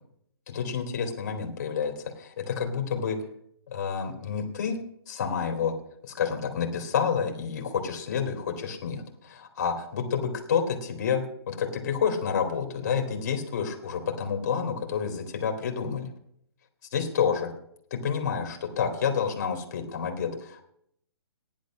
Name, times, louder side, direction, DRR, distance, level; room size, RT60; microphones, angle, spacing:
voice 1, 0.5-3.2 3.7-4.8 5.1-5.8 6.0-16.1 16.9-17.5 17.9-20.6, left 6 dB, 40° left, 4 dB, 2.6 m, -29 dB
15.0 x 10.5 x 6.3 m, 0.72 s
hypercardioid pair, 170°, 13 cm